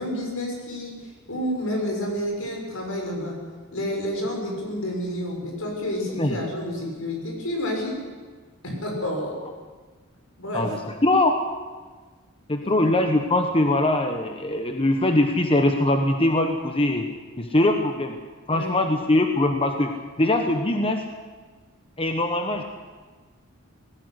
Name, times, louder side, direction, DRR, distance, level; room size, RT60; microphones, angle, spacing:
voice 1, 0.0-3.3 3.7-8.0 8.6-9.4 10.4-10.7 12.6-12.9 18.5-18.9, left 1 dB, 75° left, 0 dB, 6.8 m, -29 dB
voice 2, 10.5-11.4 12.5-17.1 17.4-18.2 18.5-21.0 22.0-22.6, left 1 dB, 25° left, 5 dB, 1.2 m, -22 dB
18.0 x 16.5 x 9.9 m, 1.4 s
head